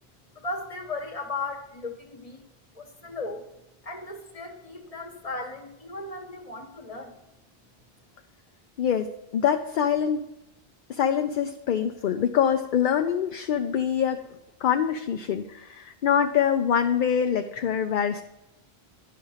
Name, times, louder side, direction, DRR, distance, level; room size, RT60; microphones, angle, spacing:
voice 1, 0.3-2.4 2.7-3.4 3.8-7.2, left 3 dB, 35° left, 5 dB, 1.3 m, -36 dB
voice 2, 9.3-10.2 10.9-14.2 14.6-18.2, left 8 dB, 60° left, 6 dB, 0.6 m, -24 dB
10.5 x 5.6 x 5.6 m, 0.90 s
omnidirectional pair, 1.1 m